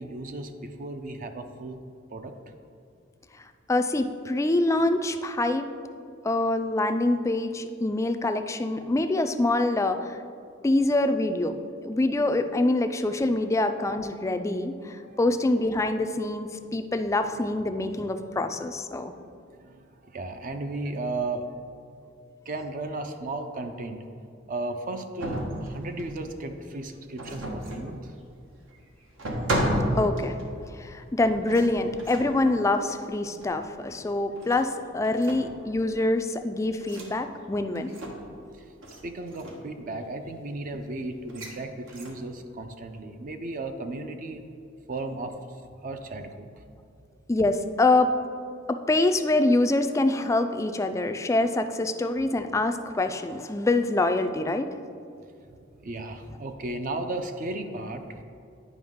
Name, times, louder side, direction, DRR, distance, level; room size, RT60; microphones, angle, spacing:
voice 1, 0.0-1.8 2.1-2.3 15.0-15.3 18.9-21.5 22.5-24.1 24.5-28.2 38.5-38.6 39.0-44.4 44.9-46.6 55.4-58.2, right 2 dB, 45° right, 7 dB, 0.5 m, -35 dB
voice 2, 3.7-5.7 6.2-10.2 10.6-11.6 11.8-19.1 30.0-30.3 30.8-37.9 47.3-48.1 48.7-54.7, left 2 dB, 15° left, 8 dB, 0.3 m, -25 dB
sound 1, 25.2-26.4 27.2-27.9 28.7-28.8 29.2-30.7 31.5-32.4 33.4-33.6 34.3-34.7 35.0-35.7 36.8-37.1 37.8-38.4 38.8-39.0 39.3-39.7 41.3-41.5 41.9-42.3, right 1 dB, 80° right, 1.1 m, -32 dB
9.3 x 5.2 x 3.6 m, 2.4 s
head